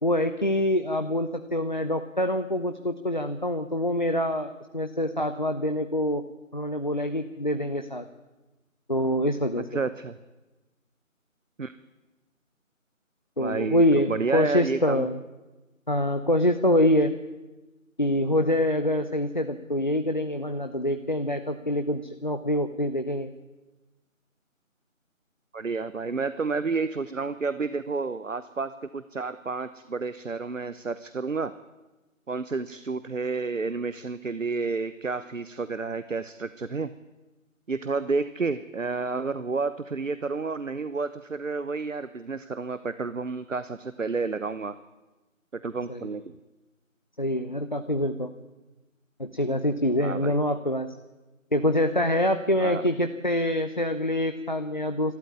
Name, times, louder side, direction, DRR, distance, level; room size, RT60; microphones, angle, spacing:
voice 1, 0.0-6.2 6.5-8.1 8.9-9.7 13.4-15.2 15.9-17.1 18.0-23.3 45.9-46.1 47.2-48.3 49.2-50.9 51.5-55.1, left 1 dB, 35° left, 8 dB, 0.8 m, -25 dB
voice 2, 9.7-10.2 11.6-11.7 13.4-13.8 14.1-15.1 25.5-31.6 32.3-36.9 37.7-44.7 45.5-46.4 50.0-50.4 52.6-52.9, right 4 dB, 65° right, 14 dB, 1.1 m, -30 dB
27.0 x 13.0 x 9.6 m, 1.1 s
figure-of-eight pair, 175°, 41 cm